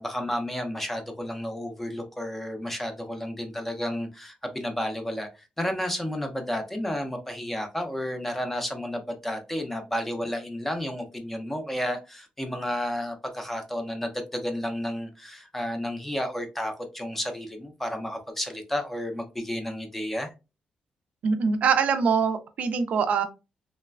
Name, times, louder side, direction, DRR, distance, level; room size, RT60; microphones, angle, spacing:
voice 1, 0.0-20.3, left 1 dB, 10° left, 5 dB, 0.4 m, -32 dB
voice 2, 21.2-23.2, right 6 dB, 60° right, 9 dB, 0.3 m, -23 dB
3.1 x 2.1 x 2.3 m, 0.28 s
wide cardioid pair, 165°, 3 cm